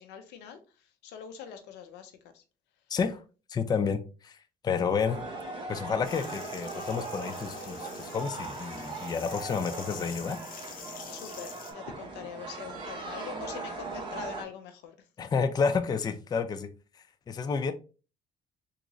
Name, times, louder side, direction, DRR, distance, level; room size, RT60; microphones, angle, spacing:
voice 1, 0.0-2.4 11.1-15.0, left 8 dB, 90° left, 0.7 m, -44 dB
voice 2, 3.5-4.4 4.6-5.2 5.7-10.4 15.2-16.7 17.3-17.7, left 5 dB, 25° left, 0.4 m, -30 dB
sound 1, 5.0-14.4, right 3 dB, 30° right, 1.1 m, -39 dB
sound 2, 6.0-11.7, left 6 dB, 55° left, 0.8 m, -47 dB
3.7 x 2.5 x 3.0 m
cardioid pair, 110°, 17 cm